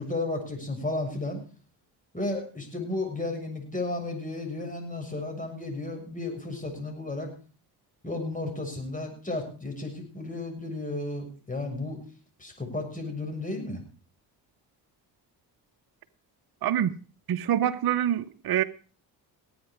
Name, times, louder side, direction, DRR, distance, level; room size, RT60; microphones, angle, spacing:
voice 1, 0.0-1.4 2.1-7.3 8.0-12.0 12.4-13.8, left 2 dB, 20° left, 7.0 m, -33 dB
voice 2, 16.6-17.0 17.3-18.6, right 10 dB, 55° right, 0.9 m, -25 dB
19.0 x 9.0 x 4.7 m
supercardioid pair, 65°, 43 cm